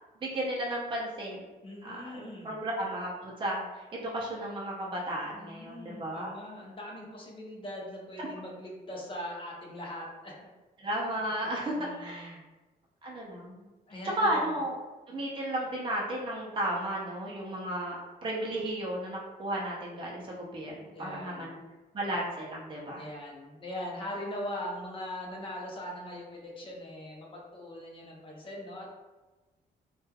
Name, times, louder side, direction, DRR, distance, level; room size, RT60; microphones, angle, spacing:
voice 1, 0.2-1.5 1.8-6.3 8.2-8.3 10.8-12.4 13.0-13.6 14.2-14.8 15.1-21.6 21.9-23.0, right 1 dB, 30° right, -4 dB, 0.5 m, -34 dB
voice 2, 1.6-2.5 5.3-10.3 11.8-12.4 13.9-14.5 20.9-21.6 23.0-28.9, left 1 dB, 30° left, -2 dB, 0.6 m, -41 dB
3.0 x 2.3 x 2.2 m, 1.2 s
cardioid pair, 140°, 17 cm